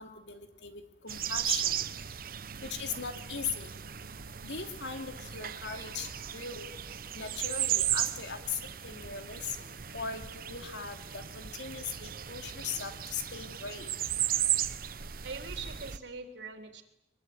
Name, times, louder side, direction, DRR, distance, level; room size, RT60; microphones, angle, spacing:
voice 1, 0.0-1.8 2.6-3.7 4.4-6.6 7.1-13.9, left 5 dB, 80° left, 6 dB, 3.1 m, -39 dB
sound 1, 1.1-16.0, right 11 dB, 55° right, 1.0 m, -35 dB
voice 2, 15.2-16.8, right 4 dB, 85° right, 6 dB, 3.6 m, -43 dB
23.5 x 22.5 x 9.6 m, 0.81 s
head